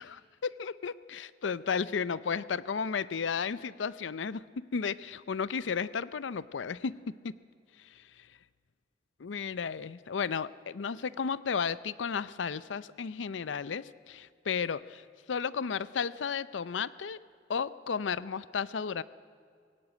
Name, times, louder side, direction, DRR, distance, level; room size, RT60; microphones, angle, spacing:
voice 1, 0.0-7.0 7.2-7.3 7.9-8.0 9.2-15.0 15.3-17.2 17.5-19.0, left 6 dB, 80° left, 18 dB, 0.5 m, -33 dB
21.0 x 17.0 x 9.2 m, 2.3 s
head